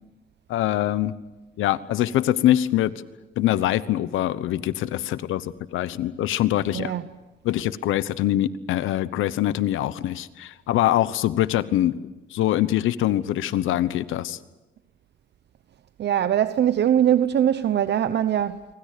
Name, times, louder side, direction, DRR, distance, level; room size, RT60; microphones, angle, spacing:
voice 1, 0.5-1.1 1.6-2.9 3.4-6.9 7.4-12.0 12.3-14.4, left 13 dB, 85° left, 1.1 m, -23 dB
voice 2, 6.7-7.1 16.0-18.7, right 10 dB, 60° right, 0.9 m, -21 dB
27.0 x 24.5 x 6.8 m
cardioid pair, 90°, 20 cm